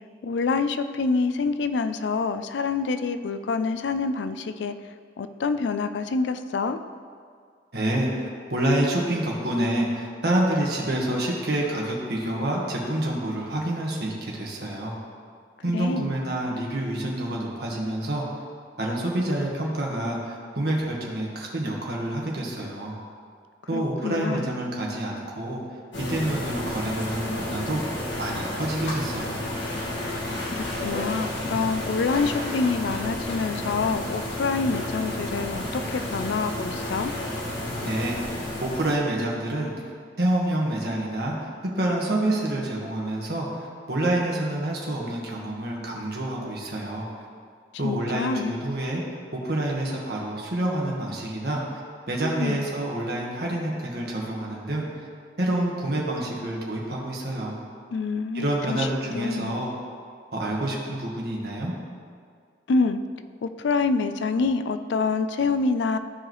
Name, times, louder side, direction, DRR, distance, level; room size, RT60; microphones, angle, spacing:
voice 1, 0.2-4.7 5.2-6.8 15.7-16.1 23.7-24.5 30.0-37.1 47.8-48.6 52.4-52.6 57.9-58.9 59.1-59.5 62.7-63.0 63.4-66.0, left 4 dB, 75° left, 10 dB, 0.4 m, -26 dB
voice 2, 7.7-14.9 15.6-18.2 18.8-22.9 23.7-25.6 26.0-29.4 37.8-39.7 40.2-41.5 41.7-47.3 47.8-51.8 52.1-54.9 55.4-57.6 58.3-59.7 60.3-61.7, right 1 dB, 60° right, -3 dB, 1.5 m, -28 dB
sound 1, 25.9-38.9, left 1 dB, 90° left, 1.6 m, -31 dB
14.0 x 4.8 x 3.1 m, 2.1 s
head